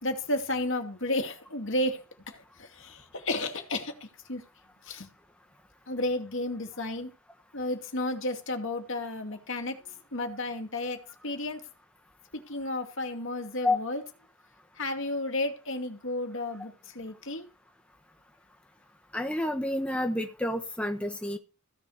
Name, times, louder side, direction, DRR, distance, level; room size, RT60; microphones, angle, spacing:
voice 1, 0.0-4.4 4.9-5.1 5.9-7.1 7.5-11.0 11.2-11.6 12.3-14.0 14.8-17.5, left 1 dB, 60° left, 2.5 m, -32 dB
voice 2, 19.1-21.4, left 1 dB, 5° left, 1.1 m, -29 dB
16.0 x 7.5 x 6.4 m
head